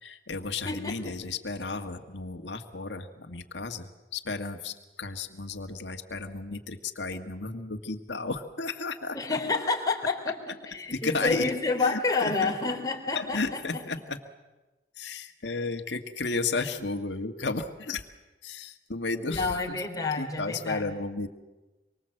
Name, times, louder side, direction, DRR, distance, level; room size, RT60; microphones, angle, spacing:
voice 1, 0.0-9.2 10.9-11.5 11.8-12.5 13.1-14.2 15.0-18.0 18.4-19.8 20.1-21.3, left 3 dB, 90° left, 6 dB, 1.7 m, -33 dB
voice 2, 0.7-1.1 9.1-10.2 10.7-13.6 19.3-20.8, left 3 dB, 20° left, 1 dB, 3.5 m, -29 dB
25.5 x 24.0 x 7.8 m, 1.1 s
head